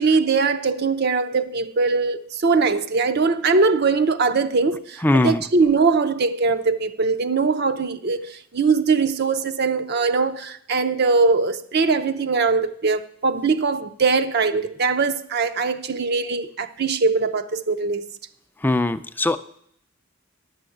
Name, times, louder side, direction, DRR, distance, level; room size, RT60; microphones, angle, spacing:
voice 1, 0.0-18.1, right 4 dB, 50° right, 0.6 m, -21 dB
voice 2, 5.0-5.4 18.6-19.4, left 2 dB, 10° left, 0.4 m, -20 dB
11.0 x 7.2 x 7.8 m
head